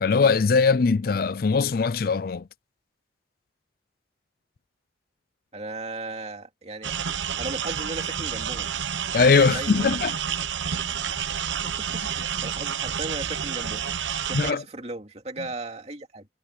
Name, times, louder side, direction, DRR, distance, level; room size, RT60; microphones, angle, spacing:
voice 1, 0.0-2.4 9.1-10.1 14.3-14.6, left 4 dB, 50° left, 0.4 m, -21 dB
voice 2, 5.5-6.9 7.4-8.7 9.1-9.9 11.6-13.9 14.2-16.3, right 2 dB, 35° right, 2.8 m, -37 dB
sound 1, 6.8-14.5, right 8 dB, 75° right, 0.9 m, -29 dB
head